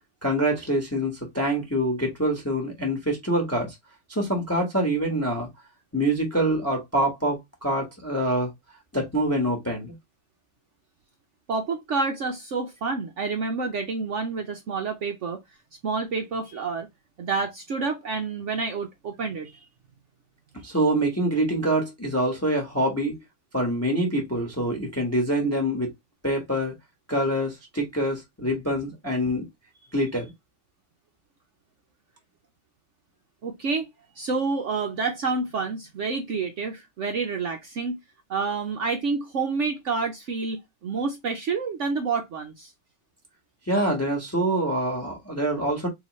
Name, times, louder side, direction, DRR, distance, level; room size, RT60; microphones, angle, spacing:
voice 1, 0.2-3.7 4.1-5.5 5.9-8.5 8.9-9.9 20.6-23.2 23.5-25.9 26.2-26.7 27.1-29.4 29.9-30.3 43.7-45.9, right 1 dB, 10° left, 0.9 m, -25 dB
voice 2, 11.5-15.4 15.8-16.9 17.2-19.7 33.4-33.9 34.2-38.0 38.3-42.7, right 4 dB, 75° right, 0.6 m, -28 dB
4.1 x 3.0 x 3.0 m
omnidirectional pair, 2.0 m